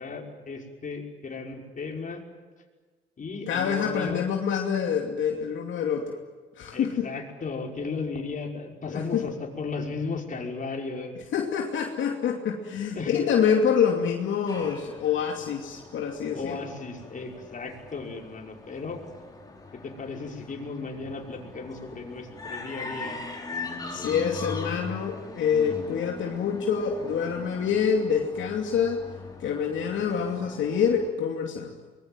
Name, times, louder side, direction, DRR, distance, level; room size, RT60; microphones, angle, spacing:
voice 1, 0.0-2.2 3.2-4.2 6.7-11.2 12.9-13.3 16.3-19.0 19.7-23.2, left 4 dB, 40° left, 1 dB, 5.6 m, -35 dB
voice 2, 3.5-6.2 6.6-7.1 8.9-9.3 11.3-16.6 23.9-29.0 29.4-31.7, left 7 dB, 75° left, 1 dB, 2.7 m, -26 dB
sound 1, 14.5-31.1, left 3 dB, 20° left, 4.8 m, -41 dB
24.5 x 21.5 x 9.1 m, 1.4 s
cardioid pair, 90°, 20 cm